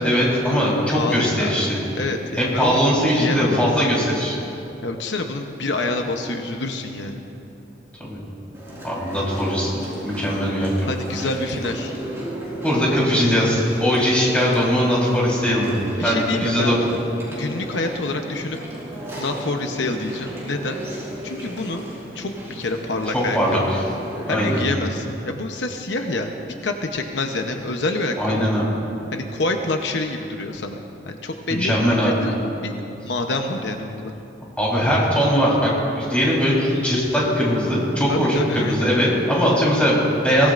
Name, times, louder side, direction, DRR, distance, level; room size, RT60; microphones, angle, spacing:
voice 1, 0.0-1.8 2.4-4.4 8.1-8.2 8.8-10.7 12.6-15.7 16.0-16.7 23.3-23.8 24.3-24.7 28.2-28.7 31.6-32.1 34.6-38.4 38.7-40.5, equal, 5° left, -6 dB, 4.0 m, -20 dB
voice 2, 0.9-1.5 2.0-2.8 3.1-3.8 4.8-7.3 10.8-12.0 16.0-16.8 17.4-18.6 19.2-20.8 21.2-21.8 22.1-23.7 24.3-26.3 26.6-28.5 29.1-30.8 31.0-32.7 33.0-34.1 38.1-38.9, left 2 dB, 80° left, 4 dB, 0.9 m, -27 dB
Chewing mastication, 8.5-24.6, equal, 15° right, 4.2 m, -34 dB
22.5 x 18.0 x 2.6 m, 2.9 s
head